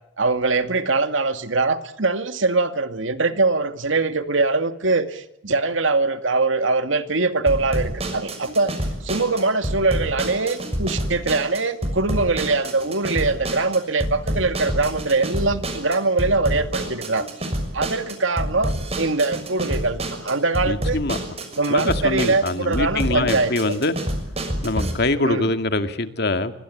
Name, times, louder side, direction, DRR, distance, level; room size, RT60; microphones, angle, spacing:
voice 1, 0.2-8.7 9.0-17.3 17.7-21.0 21.6-23.8 25.2-25.5, right 3 dB, 85° right, 9 dB, 2.3 m, -22 dB
sound 1, 7.5-24.9, equal, 30° right, 6.3 m, -28 dB
voice 2, 20.7-21.2 21.7-23.9 24.6-26.5, left 2 dB, 55° left, 8 dB, 2.2 m, -23 dB
26.0 x 24.0 x 8.7 m, 0.79 s
head